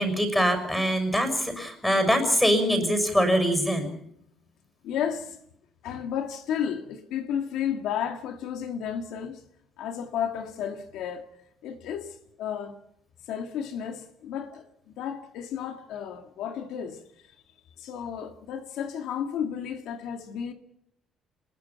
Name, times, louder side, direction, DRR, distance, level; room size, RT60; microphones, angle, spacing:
voice 1, 0.0-4.0, equal, 5° left, 6.3 m, -23 dB
voice 2, 4.8-5.4 5.8-9.4 9.8-11.3 11.6-12.8 13.3-17.0 17.8-20.5, left 8 dB, 85° left, 2.0 m, -32 dB
27.0 x 21.0 x 5.9 m
cardioid pair, 120°, 0 cm